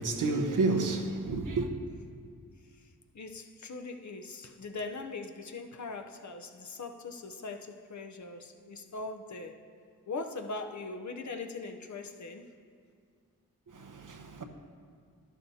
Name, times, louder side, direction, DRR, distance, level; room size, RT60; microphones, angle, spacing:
voice 1, 0.0-1.7 13.7-14.4, right 3 dB, 60° right, 0.9 m, -30 dB
voice 2, 3.1-9.6 10.1-12.5, left 3 dB, 55° left, 0.8 m, -41 dB
11.5 x 11.5 x 2.8 m
cardioid pair, 65°, 35 cm